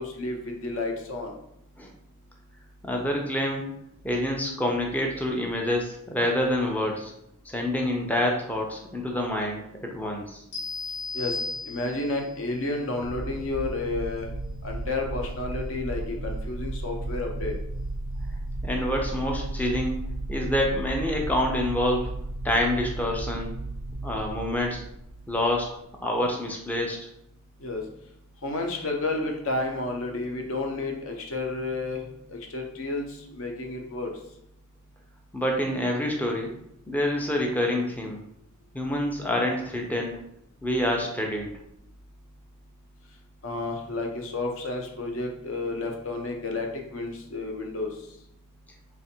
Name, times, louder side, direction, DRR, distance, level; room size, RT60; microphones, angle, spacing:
voice 1, 0.0-1.4 11.1-11.4 11.6-14.3 14.6-17.5 27.6-27.8 28.4-32.0 32.3-33.1 33.3-34.1 43.4-47.9, left 2 dB, 65° left, 2 dB, 0.7 m, -31 dB
voice 2, 2.8-3.7 4.0-7.1 7.5-9.6 9.9-10.4 18.6-20.0 20.3-22.1 22.4-23.5 24.0-24.8 25.3-25.7 26.0-27.0 35.3-36.5 36.9-38.2 38.7-40.2 40.6-41.5, left 1 dB, 5° left, 0 dB, 0.4 m, -27 dB
sound 1, 10.5-12.3, left 3 dB, 85° left, 1.0 m, -34 dB
sound 2, 13.0-26.0, right 2 dB, 85° right, 0.4 m, -34 dB
3.3 x 2.4 x 4.3 m, 0.77 s
head